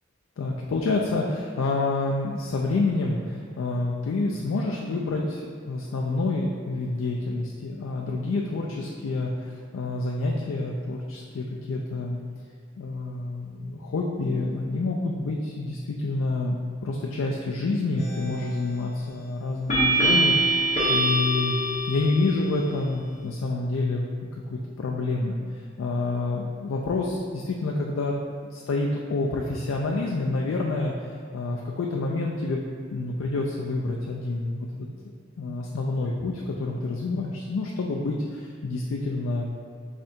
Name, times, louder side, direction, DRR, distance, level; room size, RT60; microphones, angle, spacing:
voice 1, 0.4-12.2 12.8-21.6 21.9-28.1 28.5-32.6 32.9-34.9 35.4-39.7, left 2 dB, 85° left, -1 dB, 0.4 m, -28 dB
sound 1, 18.0-18.5 19.7-22.5, right 1 dB, 35° left, 0.9 m, -24 dB
3.6 x 3.3 x 4.2 m, 2.2 s
head